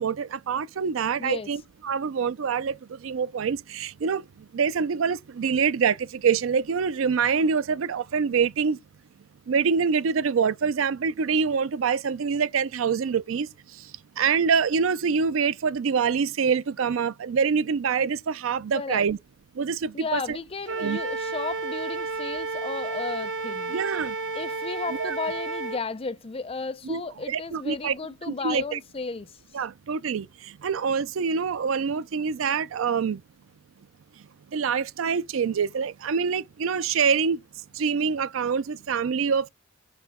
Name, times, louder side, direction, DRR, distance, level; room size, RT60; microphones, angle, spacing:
voice 1, 0.0-4.2 4.5-8.8 9.5-13.5 14.2-19.2 19.6-20.4 20.8-21.0 23.7-24.1 24.9-25.1 26.8-27.0 27.3-27.9 28.3-28.8 29.5-33.2 34.5-37.4 37.7-39.5, right 6 dB, 85° right, 0.4 m, -25 dB
voice 2, 1.2-1.6 18.7-19.1 19.9-23.7 24.3-29.4, left 4 dB, 30° left, 0.5 m, -34 dB
Wind instrument woodwind instrument, 20.7-25.8, right 3 dB, 65° right, 0.9 m, -31 dB
5.9 x 4.8 x 3.6 m
head